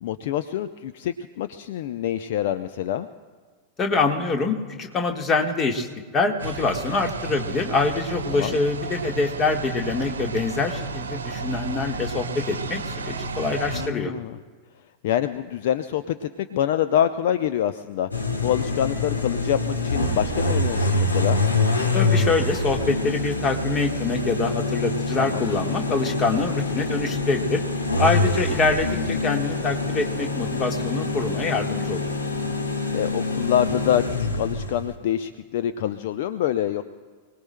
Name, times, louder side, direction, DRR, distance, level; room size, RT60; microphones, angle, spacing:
voice 1, 0.0-3.1 8.3-8.6 13.7-14.4 15.0-21.4 25.2-25.5 32.9-36.8, left 11 dB, 55° left, 11 dB, 0.5 m, -26 dB
voice 2, 3.8-5.9 6.1-14.1 21.9-27.6 28.0-32.0, left 3 dB, 25° left, 4 dB, 1.6 m, -25 dB
sound 1, 6.4-13.9, right 4 dB, 70° right, 0.9 m, -32 dB
sound 2, 18.1-34.9, left 2 dB, 75° left, 1.4 m, -25 dB
28.0 x 19.0 x 2.2 m, 1.5 s
figure-of-eight pair, 90°, 0 cm